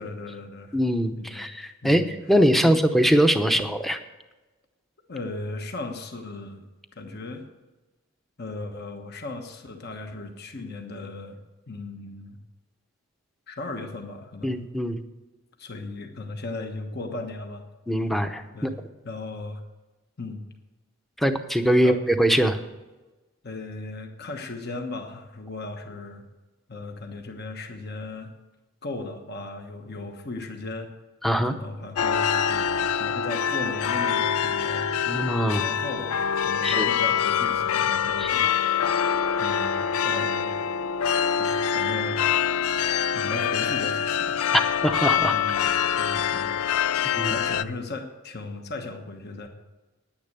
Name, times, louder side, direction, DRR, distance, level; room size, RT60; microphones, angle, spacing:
voice 1, 0.0-0.8 1.2-1.5 1.8-2.1 2.6-2.7 3.5-3.7 5.1-6.7 7.0-7.4 8.4-11.4 11.7-12.4 13.5-14.6 15.6-17.6 18.5-18.8 19.0-19.6 20.2-20.4 21.2-21.3 21.8-22.0 23.4-26.2 26.7-28.3 28.8-30.9 31.4-34.9 35.5-38.4 39.4-40.6 41.4-42.2 43.1-44.4 45.3-49.5, left 2 dB, 50° left, 5 dB, 1.2 m, -36 dB
voice 2, 0.7-2.0 2.3-4.0 14.4-15.0 17.9-18.7 21.2-22.6 31.2-31.5 35.1-35.6 36.6-36.9 38.2-38.4 44.8-45.6 47.2-47.4, equal, ahead, 7 dB, 0.7 m, -22 dB
sound 1, 32.0-47.6, left 8 dB, 85° left, 0.4 m, -25 dB
10.5 x 9.9 x 6.8 m, 1.1 s
head